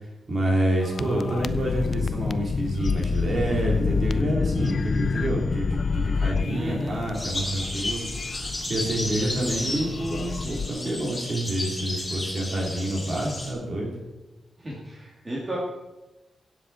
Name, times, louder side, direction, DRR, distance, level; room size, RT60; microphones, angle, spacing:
voice 1, 0.3-8.1 8.7-14.0, right 1 dB, 45° right, -2 dB, 3.5 m, -28 dB
sound 1, 0.8-10.7, left 5 dB, 50° left, 0.4 m, -28 dB
voice 2, 6.5-7.0 9.2-9.9 14.6-15.6, right 1 dB, 25° right, -5 dB, 2.4 m, -34 dB
sound 2, 7.1-13.5, left 1 dB, 20° left, 2.8 m, -33 dB
17.0 x 7.4 x 4.3 m, 1.1 s
cardioid pair, 95°, 0 cm